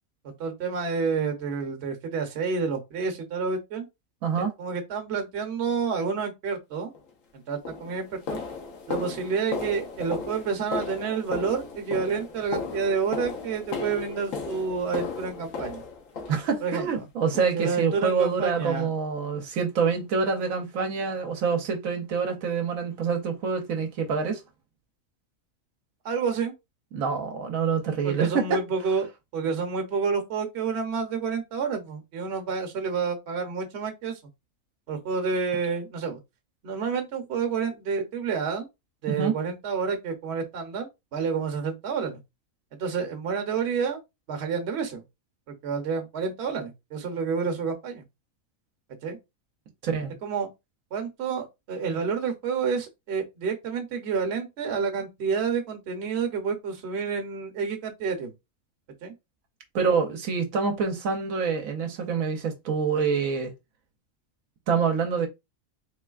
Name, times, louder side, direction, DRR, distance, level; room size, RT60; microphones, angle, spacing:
voice 1, 0.2-3.9 4.4-6.9 7.3-8.4 8.9-15.8 16.6-17.0 17.5-18.9 22.9-23.0 26.0-26.5 28.0-29.1 29.3-34.2 34.9-36.2 36.6-38.7 39.0-42.2 42.8-44.0 44.3-45.0 45.5-48.0 49.0-49.2 50.2-50.5 50.9-58.3 59.0-59.1, right 5 dB, 55° right, 1.0 m, -29 dB
voice 2, 4.2-4.5 16.3-24.4 26.9-28.6 39.1-39.3 49.8-50.1 59.7-63.5 64.7-65.3, right 5 dB, 80° right, 1.1 m, -26 dB
sound 1, 7.0-7.1 7.7-16.9 17.3-17.7 18.0-18.2 18.6-18.7 19.2-19.3 19.8-19.9, left 4 dB, 70° left, 1.2 m, -36 dB
3.8 x 3.2 x 2.3 m
omnidirectional pair, 1.4 m